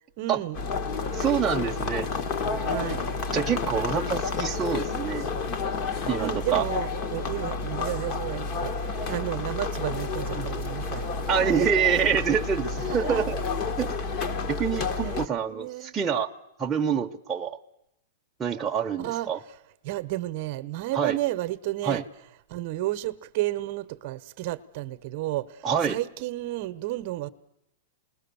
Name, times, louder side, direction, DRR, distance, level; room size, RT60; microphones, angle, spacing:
voice 1, 0.2-0.6 2.6-3.0 6.2-11.1 11.4-11.7 12.8-13.3 15.5-15.9 19.0-19.3 19.8-22.1 22.5-27.3, right 16 dB, 50° right, 12 dB, 0.9 m, -32 dB
sound 1, 0.5-15.3, left 4 dB, 40° left, 1.4 m, -30 dB
voice 2, 1.1-2.1 3.3-5.3 6.1-6.7 10.3-10.5 11.3-13.4 13.8-13.9 14.5-16.3 16.6-17.6 18.4-19.4 20.9-21.2 21.8-22.0 25.6-26.0, right 7 dB, 15° right, 2 dB, 0.8 m, -26 dB
28.5 x 20.5 x 7.0 m, 0.81 s
supercardioid pair, 150°, 0 cm